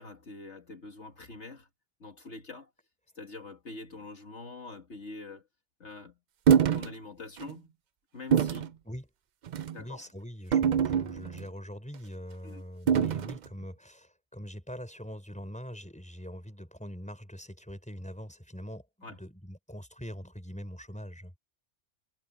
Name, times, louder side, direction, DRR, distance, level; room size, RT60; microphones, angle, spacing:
voice 1, 0.0-1.7 2.0-2.7 3.1-5.5 5.8-6.2 6.7-7.7 8.1-8.8 9.7-10.1 12.4-12.6 19.0-19.2, left 3 dB, 65° left, 2.3 m, -45 dB
sound 1, 6.5-6.9 7.4-7.5 8.3-8.7 9.5-9.8 10.5-11.4 12.9-13.4, right 8 dB, 60° right, 0.5 m, -24 dB
voice 2, 9.8-21.3, equal, 5° left, 5.7 m, -43 dB
omnidirectional pair, 1.3 m